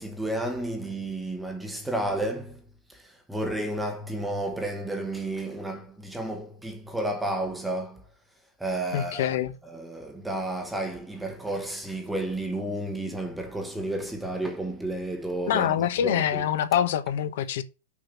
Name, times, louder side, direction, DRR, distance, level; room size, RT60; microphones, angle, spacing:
voice 1, 0.0-2.6 2.9-8.1 8.6-9.4 9.6-16.4, right 1 dB, 5° right, 1.0 m, -32 dB
voice 2, 8.9-9.5 15.5-17.6, left 10 dB, 50° left, 1.0 m, -25 dB
6.2 x 5.8 x 7.2 m
supercardioid pair, 175°, 0 cm